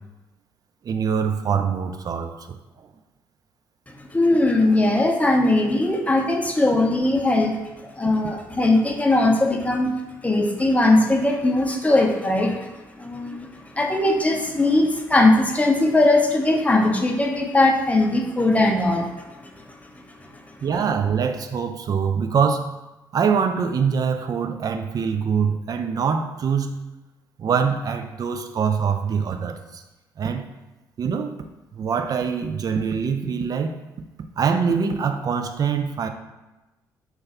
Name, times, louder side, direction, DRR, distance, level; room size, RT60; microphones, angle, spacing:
voice 1, 0.8-2.6 13.2-13.4 20.6-22.7 23.1-26.8 27.4-29.8 30.2-30.5 31.0-31.4 31.7-33.8 34.4-36.1, right 6 dB, 40° right, 6 dB, 0.4 m, -24 dB
voice 2, 4.0-9.9 10.2-12.7 13.0-19.8 20.1-20.3, left 2 dB, 15° left, 1 dB, 0.6 m, -20 dB
3.3 x 2.3 x 4.2 m, 1.1 s
figure-of-eight pair, 45°, 10 cm